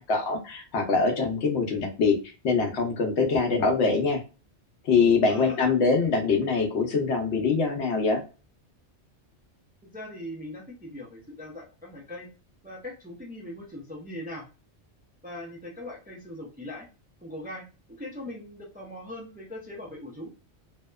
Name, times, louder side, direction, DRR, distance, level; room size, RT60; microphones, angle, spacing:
voice 1, 0.1-4.2 4.8-8.2, left 4 dB, 75° left, 4 dB, 0.9 m, -24 dB
voice 2, 9.8-12.3 12.6-14.4 15.2-16.9 17.2-17.7 18.0-20.3, left 1 dB, 15° right, -2 dB, 0.3 m, -40 dB
2.7 x 2.1 x 2.2 m, 0.32 s
omnidirectional pair, 1.2 m